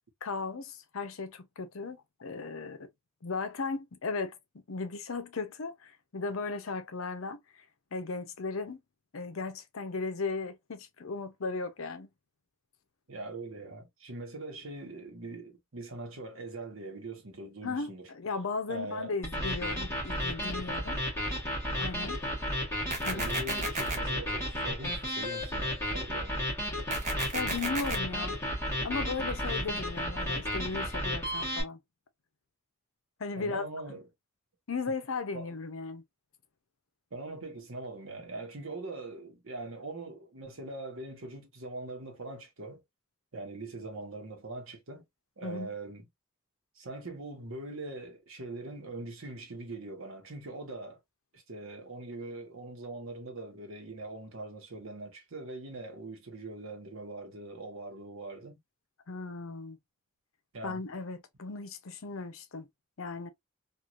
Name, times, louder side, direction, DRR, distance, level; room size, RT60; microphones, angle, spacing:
voice 1, 0.2-2.9 3.2-4.4 4.7-7.7 7.9-8.8 9.1-12.1 17.6-21.0 21.8-22.2 23.0-23.3 27.3-28.4 28.8-31.8 33.2-33.6 34.7-36.0 45.4-45.7 59.1-59.8 60.6-62.7 63.0-63.3, left 4 dB, 75° left, 0.6 m, -36 dB
voice 2, 13.1-18.1 18.7-19.1 23.1-26.4 33.4-34.0 35.3-35.5 37.1-42.8 43.3-45.0 45.4-46.1 46.7-51.0 51.3-58.6 60.5-60.8, right 2 dB, 70° right, 1.0 m, -42 dB
sound 1, 19.2-31.6, equal, 10° left, 1.2 m, -33 dB
sound 2, 22.9-24.0 26.9-28.0, right 3 dB, 35° right, 0.7 m, -34 dB
3.0 x 2.4 x 2.4 m
head